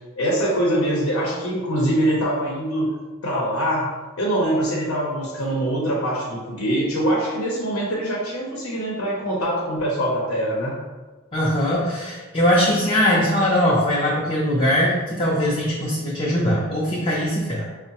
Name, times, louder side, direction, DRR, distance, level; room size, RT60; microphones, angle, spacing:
voice 1, 0.2-2.9 3.2-3.9 4.2-10.8, right 1 dB, 90° left, -4 dB, 0.7 m, -23 dB
voice 2, 11.3-17.7, equal, 25° left, -5 dB, 0.4 m, -21 dB
4.6 x 2.1 x 2.8 m, 1.3 s
head